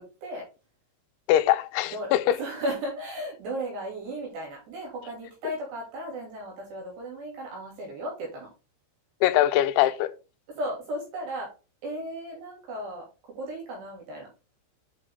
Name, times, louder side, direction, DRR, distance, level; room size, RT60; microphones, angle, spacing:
voice 1, 1.3-2.4 9.2-10.1, left 13 dB, 90° left, 3.1 m, -22 dB
voice 2, 2.4-8.5 10.6-11.5 11.8-13.0 13.4-14.3, right 1 dB, 65° right, 4.8 m, -35 dB
8.3 x 5.5 x 3.7 m
omnidirectional pair, 5.2 m